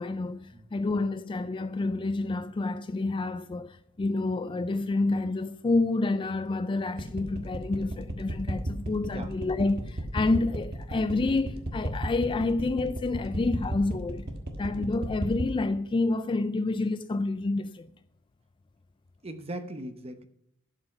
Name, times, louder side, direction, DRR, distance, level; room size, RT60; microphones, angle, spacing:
voice 1, 0.0-14.3 14.6-17.9, left 3 dB, 25° left, 0.3 m, -28 dB
sound 1, 7.0-15.5, right 1 dB, 55° right, 1.3 m, -32 dB
voice 2, 19.2-20.3, right 1 dB, 30° right, 0.9 m, -39 dB
11.5 x 5.6 x 5.7 m
head